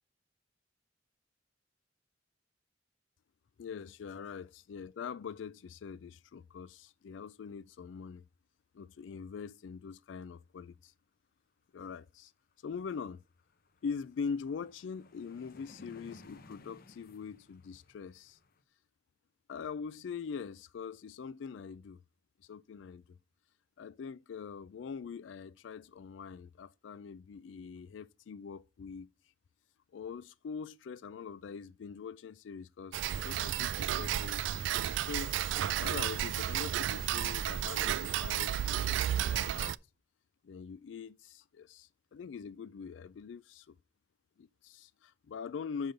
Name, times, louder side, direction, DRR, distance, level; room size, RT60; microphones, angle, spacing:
voice 1, 3.6-8.2 8.7-10.9 11.7-12.3 12.6-13.2 13.8-18.4 19.5-22.0 22.4-23.2 23.8-29.1 29.9-35.3 35.8-39.8 40.4-43.8 44.4-45.9, left 6 dB, 85° left, 0.4 m, -43 dB
sound 1, 12.5-12.6 12.9-18.6, left 2 dB, 55° left, 0.8 m, -58 dB
Tick-tock, 32.9-39.8, right 11 dB, 80° right, 0.3 m, -32 dB
6.1 x 5.3 x 6.4 m
head